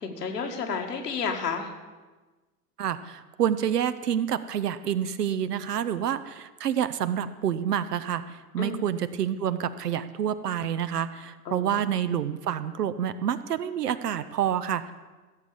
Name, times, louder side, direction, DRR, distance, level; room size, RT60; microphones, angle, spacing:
voice 1, 0.0-1.7 8.6-8.9 11.5-11.8, left 5 dB, 75° left, 3 dB, 1.8 m, -31 dB
voice 2, 2.8-14.9, right 9 dB, 70° right, 13 dB, 0.9 m, -28 dB
15.5 x 7.5 x 6.9 m, 1.3 s
figure-of-eight pair, 85°, 48 cm